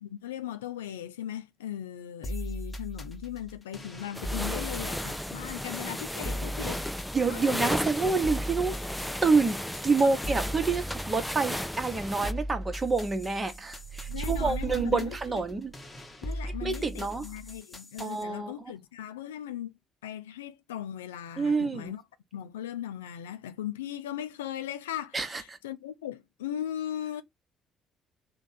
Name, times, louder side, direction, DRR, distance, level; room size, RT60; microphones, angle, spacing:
voice 1, 0.0-6.9 7.3-7.7 10.0-10.2 14.1-15.2 16.2-19.7 20.0-22.0 22.3-27.2, left 11 dB, 75° left, 0.3 m, -38 dB
sound 1, 2.2-18.2, equal, 20° left, 1.0 m, -39 dB
sound 2, 4.1-12.3, left 1 dB, 5° left, 0.4 m, -35 dB
voice 2, 7.1-8.7 9.2-15.7 16.4-17.3 18.0-18.5 21.4-21.9 25.1-25.4, right 4 dB, 25° right, 1.0 m, -27 dB
sound 3, 13.5-16.1, right 8 dB, 60° right, 0.4 m, -40 dB
3.5 x 2.3 x 4.0 m
figure-of-eight pair, 45°, 0 cm